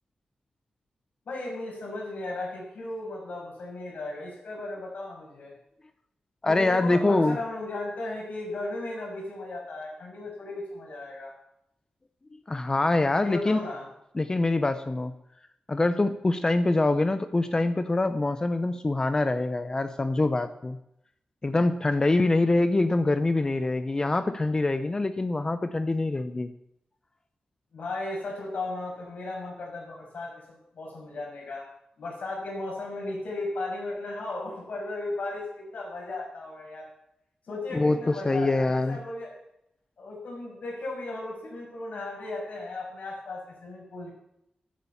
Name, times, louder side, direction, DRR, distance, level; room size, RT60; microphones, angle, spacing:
voice 1, 1.2-5.5 6.4-11.3 13.2-13.8 27.7-31.7 32.0-36.9 37.5-39.3 40.0-44.1, left 2 dB, 70° left, -2 dB, 6.3 m, -36 dB
voice 2, 6.4-7.4 12.5-13.6 14.1-15.1 15.7-20.8 21.4-26.5 37.7-39.0, left 2 dB, 25° left, 11 dB, 0.6 m, -24 dB
13.5 x 8.7 x 7.0 m, 0.79 s
wide cardioid pair, 120°, 3 cm